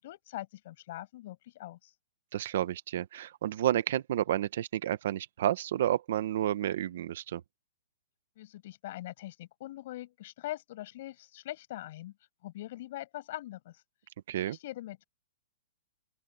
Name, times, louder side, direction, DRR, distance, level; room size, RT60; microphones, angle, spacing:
voice 1, 0.0-1.9 8.4-12.2 12.4-13.8 14.4-15.0, left 15 dB, 35° left, 7.0 m, -42 dB
voice 2, 2.3-7.4 14.3-14.6, right 12 dB, 45° right, 0.8 m, -30 dB
open air
hypercardioid pair, 180°, 0 cm